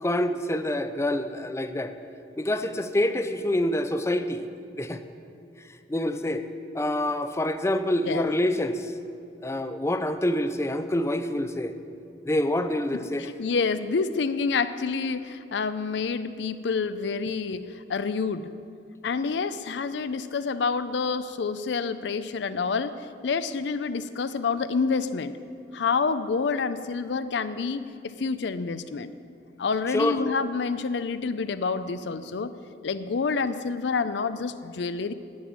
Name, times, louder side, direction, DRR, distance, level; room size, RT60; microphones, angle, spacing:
voice 1, 0.0-2.0 2.4-4.5 4.8-5.0 5.9-6.5 6.7-8.9 9.4-11.7 12.2-13.3 29.9-30.2, left 1 dB, 15° left, 9 dB, 0.5 m, -26 dB
voice 2, 12.9-18.5 19.0-25.3 25.7-29.1 29.6-32.5 32.8-35.1, left 4 dB, 75° left, 12 dB, 0.5 m, -28 dB
10.5 x 8.9 x 7.4 m, 2.5 s
head